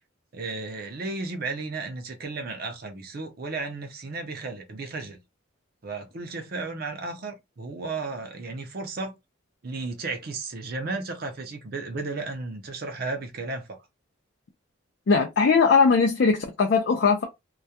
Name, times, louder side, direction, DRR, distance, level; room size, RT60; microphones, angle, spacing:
voice 1, 0.3-5.2 5.8-9.1 9.6-13.8, right 3 dB, 45° right, 0.5 m, -34 dB
voice 2, 15.1-17.2, left 5 dB, 55° left, 0.4 m, -20 dB
2.3 x 2.1 x 2.7 m
head